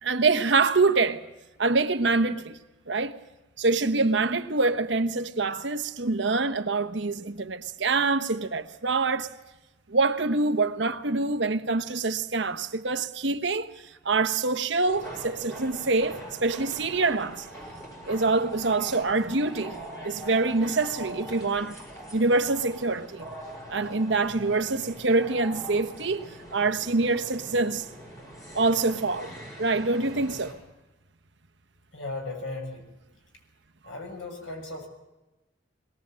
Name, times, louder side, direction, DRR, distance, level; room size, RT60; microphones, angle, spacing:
voice 1, 0.0-1.2 1.6-2.6 2.9-3.2 3.6-9.3 9.9-17.5 18.1-19.8 20.0-21.8 22.1-23.3 23.7-27.9 28.5-29.3 29.6-30.6, right 3 dB, 65° right, 1.1 m, -25 dB
sound 1, 14.9-30.5, right 1 dB, 15° left, 6.6 m, -42 dB
voice 2, 31.9-32.8 33.8-34.9, left 2 dB, 85° left, 6.5 m, -36 dB
22.0 x 18.5 x 7.6 m
head